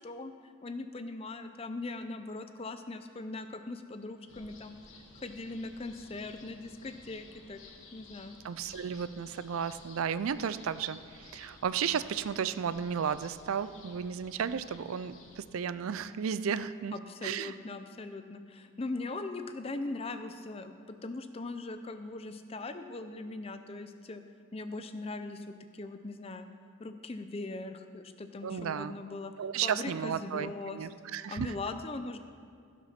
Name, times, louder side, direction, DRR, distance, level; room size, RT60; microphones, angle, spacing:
voice 1, 0.0-4.8 5.1-7.6 7.9-8.4 16.9-24.2 24.5-26.5 26.8-29.3 29.6-30.9 31.3-32.2, left 2 dB, 30° left, 9 dB, 0.5 m, -40 dB
sound 1, 4.3-15.4, left 3 dB, 65° left, 1.4 m, -54 dB
voice 2, 8.4-16.9 17.2-17.5 28.4-28.9 29.4-31.5, right 7 dB, 75° right, 14 dB, 0.4 m, -34 dB
15.5 x 5.9 x 5.8 m, 2.3 s
head